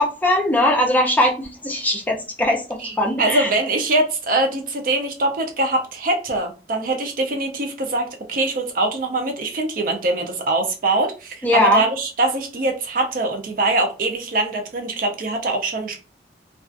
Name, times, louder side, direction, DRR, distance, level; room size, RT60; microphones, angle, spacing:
voice 1, 0.0-3.5 11.4-11.8, left 1 dB, 10° left, -1 dB, 0.5 m, -20 dB
voice 2, 3.2-16.0, right 2 dB, 50° right, 3 dB, 0.4 m, -23 dB
2.3 x 2.3 x 2.4 m, 0.33 s
head